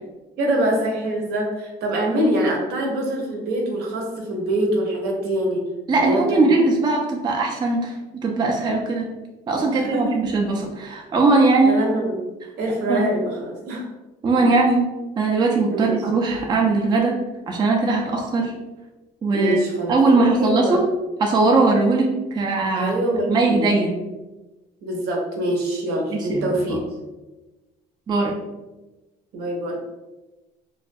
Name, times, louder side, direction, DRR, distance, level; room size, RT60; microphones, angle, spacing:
voice 1, 0.4-5.6 6.0-6.6 9.5-10.2 11.6-12.3 12.6-13.9 14.4-14.5 15.7-15.9 19.3-20.8 22.7-23.7 24.8-26.8 29.3-29.8, right 1 dB, 75° right, -1 dB, 0.7 m, -24 dB
voice 2, 5.9-8.0 8.2-9.1 9.5-11.7 12.9-13.0 14.2-14.8 15.2-17.2 17.5-18.5 19.2-19.6 19.9-20.8 21.2-22.9 23.3-23.9 26.1-26.8 28.1-28.3, right 3 dB, 25° right, 0 dB, 0.3 m, -20 dB
2.3 x 2.2 x 2.5 m, 1.1 s
cardioid pair, 110°, 17 cm